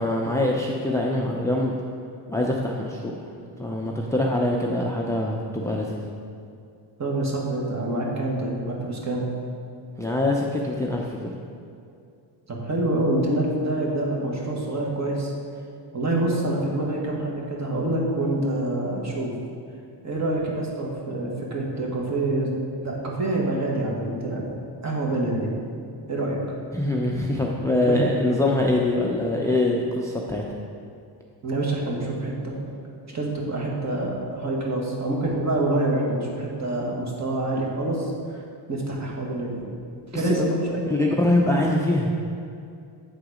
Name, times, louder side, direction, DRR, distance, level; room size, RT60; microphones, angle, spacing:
voice 1, 0.0-1.7 2.3-3.2 3.6-6.1 10.0-11.4 26.7-30.4 40.1-40.5 40.9-42.1, left 1 dB, 5° left, -1 dB, 0.4 m, -24 dB
voice 2, 7.0-9.2 12.5-15.3 15.9-19.3 20.0-22.5 22.8-24.4 24.8-25.5 26.1-26.4 27.8-28.0 31.4-32.6 33.1-38.4 38.7-39.7 40.1-40.8, right 2 dB, 40° right, -2 dB, 1.5 m, -26 dB
8.1 x 3.9 x 4.9 m, 2.5 s
cardioid pair, 105°, 44 cm